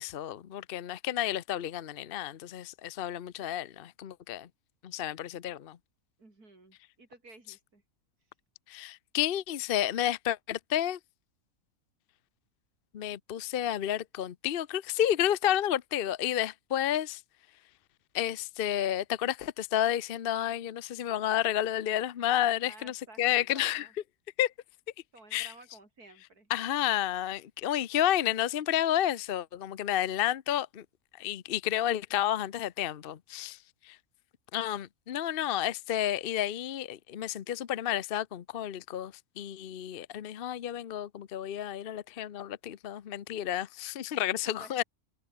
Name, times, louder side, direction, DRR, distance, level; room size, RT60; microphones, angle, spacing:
voice 1, 0.0-4.5 4.8-5.8 8.7-11.0 12.9-17.2 18.1-23.9 24.4-24.5 25.3-25.5 26.5-30.8 31.2-33.6 33.8-34.0 34.5-44.8, left 11 dB, 50° left, 0.8 m, -31 dB
voice 2, 6.2-7.8 22.6-23.9 25.1-26.5 44.1-44.8, right 2 dB, 90° right, 5.8 m, -54 dB
omnidirectional pair, 1.6 m